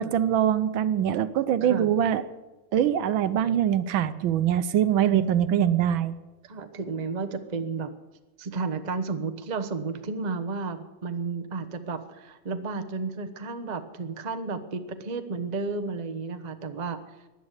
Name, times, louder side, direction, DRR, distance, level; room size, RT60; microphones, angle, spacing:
voice 1, 0.0-2.2 2.7-6.1, right 10 dB, 70° right, 13 dB, 1.4 m, -23 dB
voice 2, 5.1-5.8 6.4-7.9 8.4-17.0, right 4 dB, 35° right, 9 dB, 0.6 m, -32 dB
16.0 x 11.0 x 8.2 m, 1.1 s
omnidirectional pair, 2.4 m